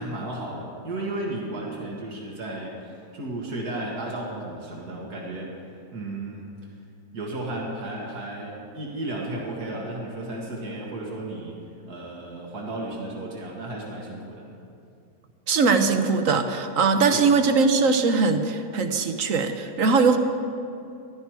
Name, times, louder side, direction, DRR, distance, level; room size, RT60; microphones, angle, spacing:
voice 1, 0.0-5.5 5.9-6.4 7.1-11.6 11.9-14.5 17.1-17.3, right 2 dB, 80° right, -2 dB, 2.4 m, -34 dB
voice 2, 15.5-20.2, right 4 dB, 60° right, 7 dB, 1.2 m, -21 dB
15.0 x 12.0 x 4.7 m, 2.6 s
omnidirectional pair, 1.6 m